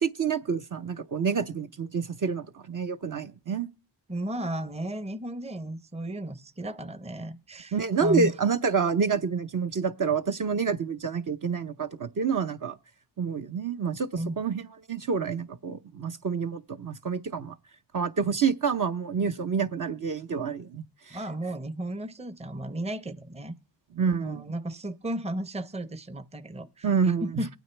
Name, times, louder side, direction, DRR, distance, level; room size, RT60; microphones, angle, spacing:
voice 1, 0.0-3.7 7.7-12.8 13.2-17.5 17.9-21.2 23.9-24.4 26.8-27.4, right 5 dB, 45° right, 0.8 m, -28 dB
voice 2, 4.1-8.3 14.2-14.4 21.1-23.5 24.2-26.9 27.2-27.5, right 1 dB, 15° right, 0.7 m, -34 dB
22.5 x 9.2 x 3.3 m
cardioid pair, 70°, 45 cm